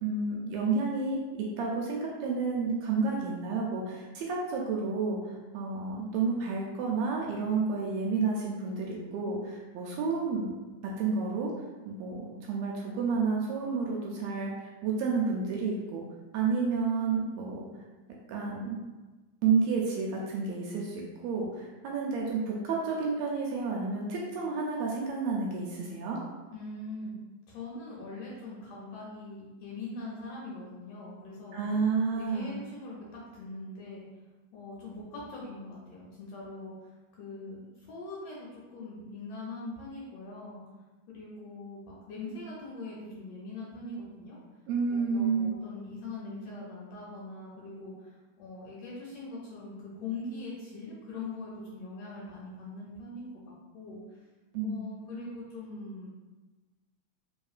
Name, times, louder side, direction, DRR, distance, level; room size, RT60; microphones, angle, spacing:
voice 1, 0.0-5.2 5.5-10.6 10.8-11.5 11.8-16.0 16.3-17.7 18.3-18.8 19.4-26.2 31.5-32.6 44.7-45.5 54.5-54.8, right 4 dB, 80° right, -2 dB, 1.7 m, -30 dB
voice 2, 26.5-27.2 27.5-31.6 32.1-34.0 34.5-36.9 37.2-40.6 41.1-44.4 44.9-53.3 53.7-54.2 54.6-56.1, left 2 dB, 75° left, -4 dB, 1.6 m, -42 dB
3.7 x 3.6 x 2.4 m, 1.2 s
omnidirectional pair, 3.4 m